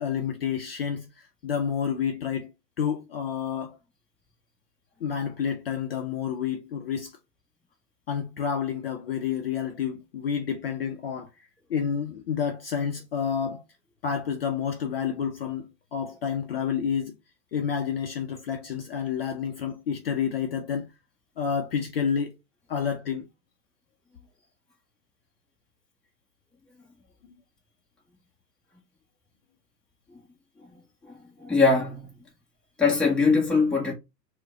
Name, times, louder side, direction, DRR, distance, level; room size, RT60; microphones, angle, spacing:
voice 1, 0.0-2.5 2.8-3.8 5.0-7.2 8.1-11.3 11.7-13.6 14.0-17.1 17.5-20.9 21.4-22.4 22.7-23.3, left 7 dB, 40° left, 0.5 m, -29 dB
voice 2, 31.1-32.1 32.8-33.9, left 4 dB, ahead, 0.7 m, -22 dB
4.5 x 2.2 x 3.8 m
figure-of-eight pair, 115°, 50 cm